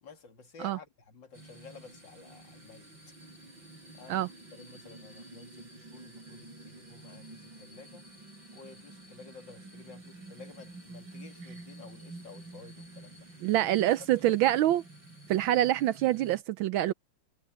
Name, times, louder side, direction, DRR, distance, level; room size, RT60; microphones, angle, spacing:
voice 1, 0.0-3.1 3.9-8.1 8.5-13.5 14.0-14.3, left 5 dB, 60° left, 3.0 m, -52 dB
sound 1, 1.3-16.4, right 2 dB, 60° right, 6.1 m, -49 dB
voice 2, 13.4-14.8 15.3-16.9, right 13 dB, 75° right, 1.3 m, -25 dB
omnidirectional pair, 2.4 m